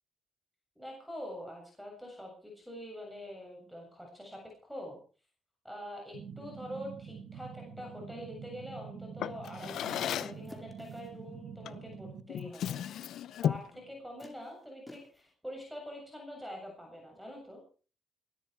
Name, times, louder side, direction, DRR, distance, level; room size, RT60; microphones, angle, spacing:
voice 1, 0.8-5.0 5.6-12.8 13.1-17.6, equal, ahead, 1 dB, 7.5 m, -45 dB
sound 1, 6.1-12.2, right 6 dB, 65° right, 2.7 m, -46 dB
Drawer open or close, 9.2-10.5 11.6-11.9 12.3-13.8, left 10 dB, 70° left, 0.7 m, -34 dB
sound 2, 10.1-11.2 13.0-13.1 14.2-15.3, left 2 dB, 15° left, 4.2 m, -54 dB
21.0 x 13.5 x 4.7 m, 0.39 s
cardioid pair, 90°, 0 cm